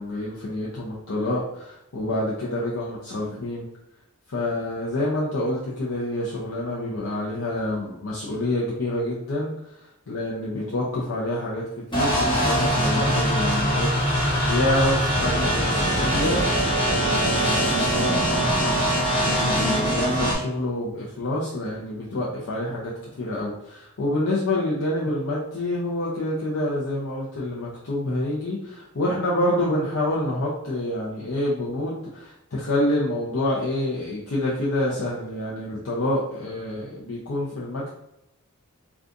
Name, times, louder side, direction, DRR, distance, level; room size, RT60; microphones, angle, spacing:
voice 1, 0.0-3.7 4.3-11.6 11.9-16.4 16.9-37.9, left 1 dB, 70° left, -6 dB, 0.6 m, -27 dB
sound 1, 11.9-20.3, equal, 20° left, 1.3 m, -22 dB
3.6 x 2.4 x 2.6 m, 0.83 s
head